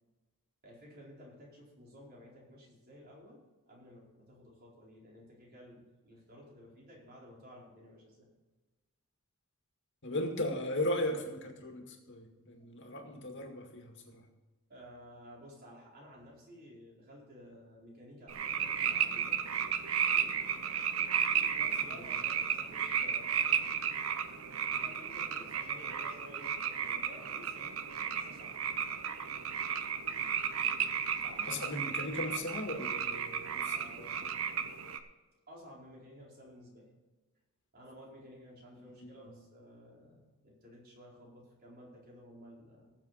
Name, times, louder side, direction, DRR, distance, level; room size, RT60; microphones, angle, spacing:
voice 1, 0.6-8.3 12.9-13.0 14.7-19.4 20.0-20.4 21.2-23.8 24.7-28.6 31.1-31.6 33.4-34.7 35.5-36.9 37.7-42.9, equal, 45° right, -4 dB, 4.4 m, -54 dB
voice 2, 10.0-14.3 21.9-22.2 31.4-34.2 38.8-39.3, left 1 dB, 60° left, 3 dB, 2.0 m, -37 dB
sound 1, 18.3-35.0, right 8 dB, 75° right, 0.9 m, -34 dB
19.5 x 7.5 x 4.2 m, 1.2 s
head